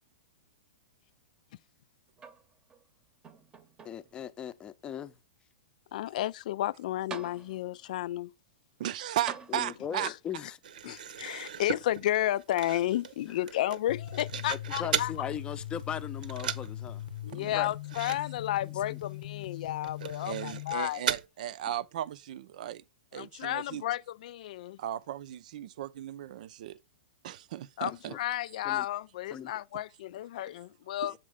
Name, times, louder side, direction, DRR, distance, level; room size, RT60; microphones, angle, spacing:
sound 1, 2.2-2.8 3.2-4.2 5.0-5.1 6.6-6.7 7.1-7.9 9.3-10.1 11.2-11.3, right 5 dB, 15° right, 0.9 m, -46 dB
voice 1, 3.8-5.2 9.5-10.6 10.8-11.0 14.8-17.0 17.3-17.7 18.9-19.0 28.1-28.2 28.6-28.9 29.3-29.5, left 9 dB, 20° left, 0.6 m, -38 dB
voice 2, 5.9-8.3 10.0-10.1 10.8-15.1 17.2-21.0 23.1-24.8 27.8-31.1, left 13 dB, 60° left, 0.4 m, -32 dB
voice 3, 8.8-10.1 17.2-17.7 20.3-22.8 23.1-23.8 24.8-26.8 27.2-28.1, right 12 dB, 60° right, 0.6 m, -36 dB
sound 2, 10.6-15.2 15.6-16.0 16.2-16.7 17.0-17.1 17.4-17.5 17.8-18.2 18.4-18.6 19.0-19.1 19.8-21.2, right 8 dB, 80° right, 1.0 m, -37 dB
sound 3, 13.9-20.7, left 12 dB, 90° left, 0.8 m, -40 dB
7.4 x 4.2 x 4.9 m
hypercardioid pair, 135°, 5 cm